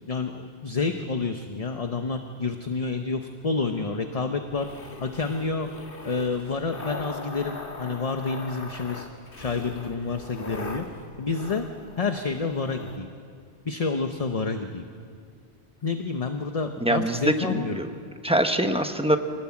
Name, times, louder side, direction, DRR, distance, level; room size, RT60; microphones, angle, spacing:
voice 1, 0.1-4.7 5.0-5.7 6.0-9.1 9.4-10.9 11.2-11.7 12.0-13.1 13.6-14.8 15.8-17.9, left 4 dB, 35° left, 6 dB, 0.9 m, -29 dB
sound 1, 4.5-13.0, left 2 dB, 55° left, 1.7 m, -40 dB
voice 2, 16.8-17.9 18.2-19.2, right 1 dB, 5° right, 6 dB, 1.1 m, -23 dB
24.5 x 18.5 x 8.6 m, 2.3 s
omnidirectional pair, 1.1 m